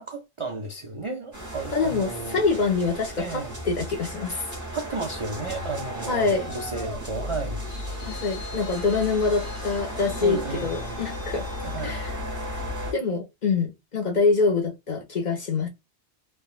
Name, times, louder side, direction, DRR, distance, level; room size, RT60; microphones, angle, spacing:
voice 1, 0.0-2.4 3.2-3.6 4.7-7.6 10.2-11.0 11.6-12.0, right 3 dB, 50° right, 0.3 m, -33 dB
sound 1, 1.3-12.9, left 1 dB, 15° right, 0.9 m, -35 dB
voice 2, 1.7-4.5 6.1-6.5 8.0-11.5 11.8-12.1 12.9-15.7, left 4 dB, 50° left, 0.7 m, -25 dB
Traffic noise roadway noise, 5.1-12.7, left 1 dB, 75° left, 1.4 m, -43 dB
3.4 x 2.1 x 2.4 m
omnidirectional pair, 1.2 m